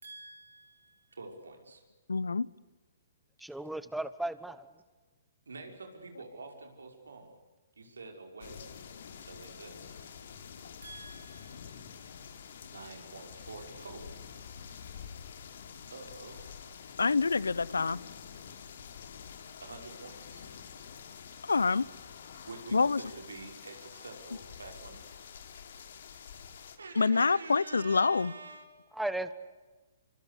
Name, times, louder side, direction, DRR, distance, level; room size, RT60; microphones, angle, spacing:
voice 1, 0.0-1.8 5.5-7.4 7.8-8.7 9.2-10.0 10.8-12.1 12.6-14.2 15.9-16.6 19.6-20.5 22.4-25.3 26.8-28.9, right 3 dB, 85° right, 4 dB, 5.6 m, -47 dB
voice 2, 2.1-2.5 17.0-18.0 21.5-21.9 22.7-23.0 27.0-28.3, left 4 dB, 85° left, 23 dB, 0.8 m, -26 dB
voice 3, 3.4-4.7 29.0-29.3, right 1 dB, 5° right, 13 dB, 1.1 m, -35 dB
sound 1, 8.4-26.8, left 7 dB, 65° left, 3.3 m, -48 dB
26.5 x 24.5 x 8.4 m, 1.3 s
hypercardioid pair, 130°, 0 cm